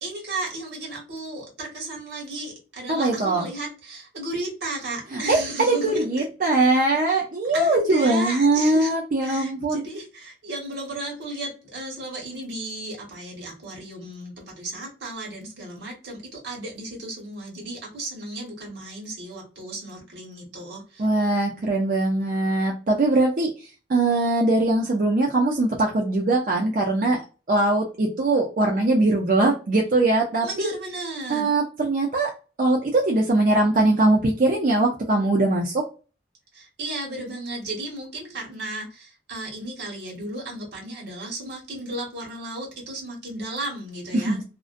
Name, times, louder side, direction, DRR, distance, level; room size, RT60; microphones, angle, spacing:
voice 1, 0.0-6.2 7.5-9.0 9.2-21.1 30.4-31.5 36.5-44.4, right 2 dB, 85° right, -2 dB, 1.1 m, -34 dB
voice 2, 2.9-3.5 5.1-9.8 21.0-23.5 23.9-27.2 27.5-30.7 31.3-32.3 32.6-35.8 44.1-44.4, right 2 dB, 50° right, -1 dB, 0.4 m, -21 dB
2.4 x 2.1 x 2.4 m, 0.34 s
head